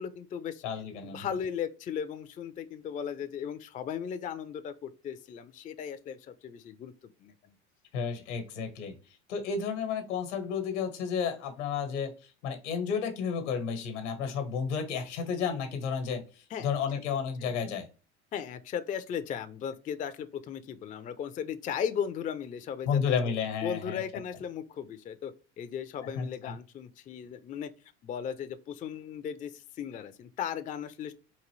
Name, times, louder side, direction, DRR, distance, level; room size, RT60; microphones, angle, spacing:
voice 1, 0.0-0.6 1.0-6.9 7.2-7.5 16.5-16.7 17.4-17.5 18.3-23.1 23.6-27.7 28.0-31.1, left 8 dB, 25° left, 0.4 m, -36 dB
voice 2, 0.6-1.4 7.9-8.9 9.3-12.1 12.4-16.2 16.6-17.8 22.9-24.0 26.2-26.5, left 6 dB, 85° left, 1.0 m, -32 dB
3.8 x 2.6 x 3.0 m
hypercardioid pair, 80°, 35 cm